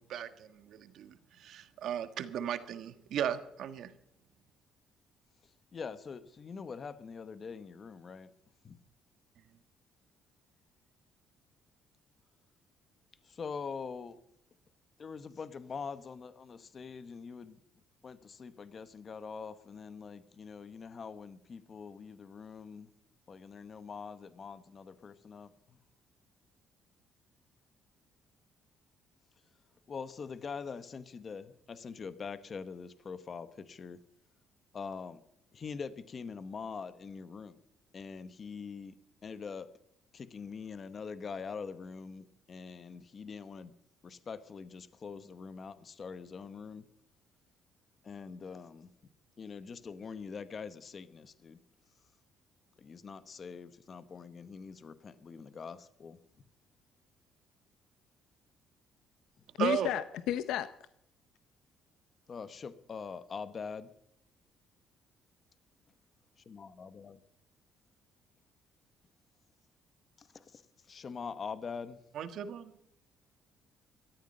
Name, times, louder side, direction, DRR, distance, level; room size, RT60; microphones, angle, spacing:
voice 1, 0.1-3.9 59.6-59.9 72.1-72.7, right 9 dB, 60° right, 11 dB, 1.4 m, -36 dB
voice 2, 5.7-8.3 8.6-8.8 13.2-14.2 15.0-17.6 18.0-22.9 23.3-25.8 29.9-34.0 34.7-35.2 35.5-37.6 37.9-38.9 39.2-39.7 40.1-43.7 44.0-46.9 48.0-48.9 49.4-51.6 52.8-56.2 62.3-63.9 66.4-67.2 70.2-70.6 70.9-72.0, left 5 dB, 35° left, 13 dB, 1.0 m, -44 dB
voice 3, 59.6-60.7, left 11 dB, 80° left, 13 dB, 0.7 m, -32 dB
17.5 x 13.5 x 5.4 m, 0.73 s
cardioid pair, 145°, 0 cm